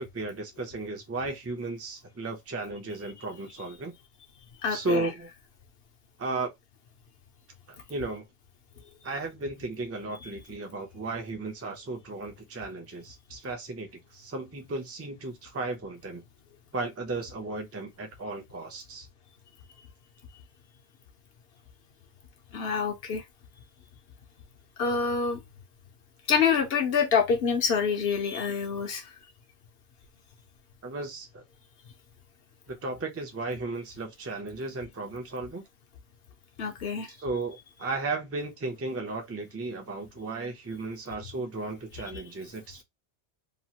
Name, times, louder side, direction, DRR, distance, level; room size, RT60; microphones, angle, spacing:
voice 1, 0.0-3.9 4.7-5.3 6.2-6.5 7.7-8.2 9.0-16.2 16.7-19.1 30.8-31.4 32.7-35.6 37.0-42.8, right 3 dB, 20° right, 0.4 m, -35 dB
voice 2, 4.6-5.1 22.5-23.2 24.8-25.4 26.3-29.0 36.6-37.1, left 6 dB, 65° left, 0.9 m, -26 dB
2.9 x 2.4 x 2.8 m
omnidirectional pair, 1.2 m